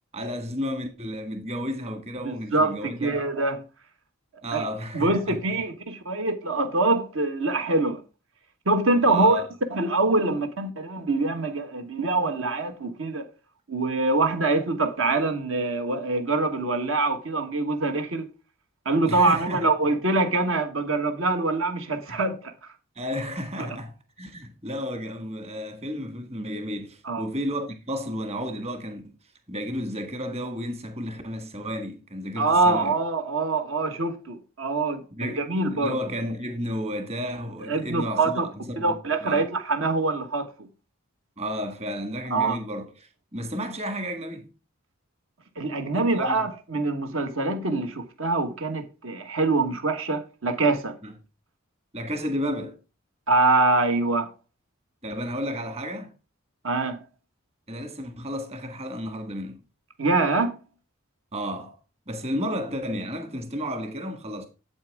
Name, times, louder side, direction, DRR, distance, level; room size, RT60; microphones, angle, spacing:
voice 1, 0.1-3.1 4.4-5.4 9.0-9.5 19.1-19.6 22.1-22.2 23.0-29.1 29.5-32.9 35.1-35.4 35.8-39.0 39.2-39.5 41.4-44.5 45.9-46.5 51.0-51.1 51.9-52.8 55.0-56.1 57.7-59.6 61.3-61.8 62.1-64.5, equal, 30° right, 1.7 m, -32 dB
voice 2, 2.2-3.6 4.5-4.7 4.9-8.0 8.6-9.4 9.7-13.3 13.7-18.3 18.8-22.5 23.6-23.7 27.0-27.3 32.4-36.0 37.7-38.5 38.8-40.7 42.3-42.6 45.6-51.0 53.3-54.3 56.6-57.0 60.0-60.6, right 3 dB, 70° right, 1.4 m, -24 dB
8.8 x 8.2 x 3.5 m
head